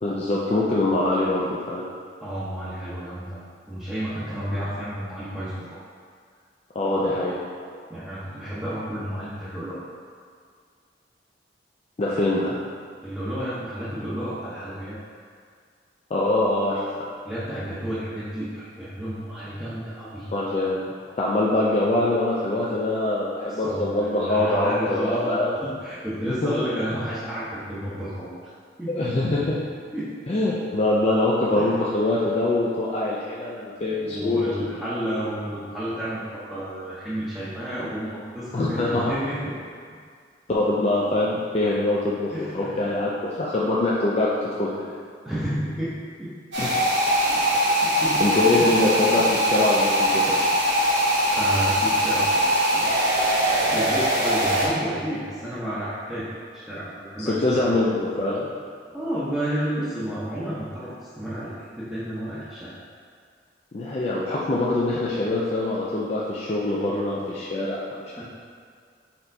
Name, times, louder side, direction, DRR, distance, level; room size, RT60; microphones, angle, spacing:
voice 1, 0.0-1.8 6.7-7.3 12.0-12.6 16.1-17.1 20.3-20.8 21.2-25.5 26.3-26.5 28.9-29.6 30.3-34.7 38.5-39.1 40.5-44.3 44.6-45.0 46.6-46.7 48.2-50.4 57.2-58.5 63.7-68.2, left 2 dB, 35° left, -6 dB, 0.4 m, -24 dB
voice 2, 2.2-3.4 3.7-5.8 7.9-9.8 13.0-15.0 17.2-20.3 23.5-28.5 28.8-29.1 29.9-30.1 31.6-31.8 34.0-39.5 42.3-42.7 45.2-45.9 46.2-46.3 47.3-47.4 47.7-48.7 51.4-53.1 53.4-56.3 56.5-57.7 58.9-60.9 61.2-62.8 68.2-68.3, equal, 5° right, -12 dB, 0.7 m, -31 dB
sound 1, 46.5-54.7, equal, 85° right, 1.2 m, -21 dB
4.3 x 4.3 x 2.6 m, 2.1 s
head